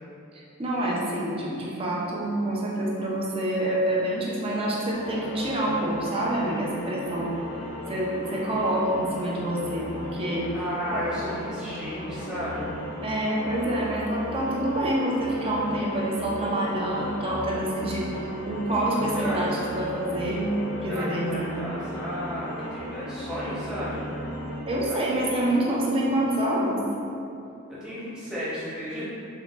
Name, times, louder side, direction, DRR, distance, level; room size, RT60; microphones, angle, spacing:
voice 1, 0.3-7.3 7.9-10.5 10.9-11.0 13.0-18.1 18.5-20.5 20.8-21.7 24.7-26.8, right 1 dB, 25° right, -4 dB, 0.4 m, -27 dB
sound 1, 4.9-24.6, left 1 dB, 60° left, 0.6 m, -36 dB
voice 2, 10.5-12.7 19.1-19.6 20.9-24.0 24.9-25.2 27.7-29.0, equal, 5° right, -11 dB, 0.8 m, -33 dB
4.1 x 2.2 x 2.4 m, 2.7 s
head